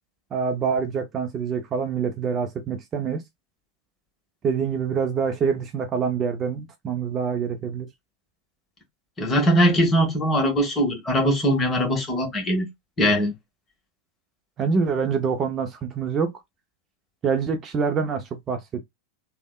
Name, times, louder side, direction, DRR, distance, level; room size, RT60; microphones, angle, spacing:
voice 1, 0.3-3.2 4.4-7.9 14.6-16.3 17.2-18.8, right 6 dB, 30° right, 0.5 m, -25 dB
voice 2, 9.2-12.7 13.0-13.3, equal, 20° left, 1.2 m, -21 dB
3.4 x 2.1 x 2.3 m
figure-of-eight pair, 90°, 0 cm